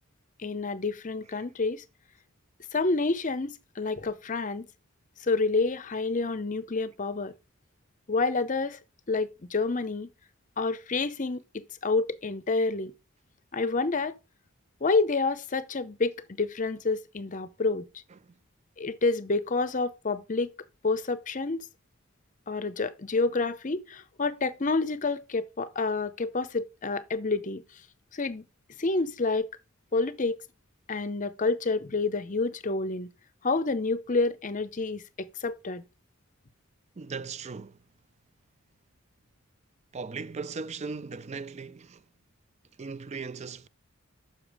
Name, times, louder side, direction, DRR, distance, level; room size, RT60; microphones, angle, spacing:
voice 1, 0.4-1.8 2.7-4.7 5.2-7.3 8.1-8.8 9.1-10.1 10.6-12.9 13.5-14.2 14.8-17.9 18.8-20.5 20.8-21.7 22.5-27.6 28.1-28.4 28.8-29.5 29.9-30.4 30.9-33.1 33.4-35.8, left 3 dB, 35° left, 0.7 m, -28 dB
voice 2, 37.0-37.8 39.9-42.0 42.8-43.7, right 4 dB, 30° right, 0.4 m, -38 dB
7.0 x 5.7 x 4.8 m
head